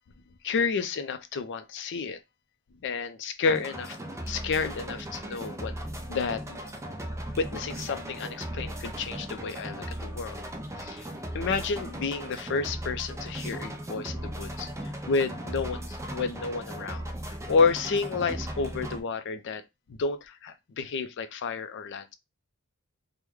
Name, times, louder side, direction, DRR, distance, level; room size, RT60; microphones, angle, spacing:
voice 1, 0.4-2.2 2.8-4.0 4.3-5.7 6.1-6.6 7.4-10.4 10.8-11.1 11.3-14.7 15.1-17.1 17.5-19.6 19.9-22.1, left 4 dB, 55° left, 0.4 m, -30 dB
sound 1, 3.5-19.0, right 1 dB, 15° right, 0.4 m, -37 dB
3.1 x 2.1 x 3.5 m
head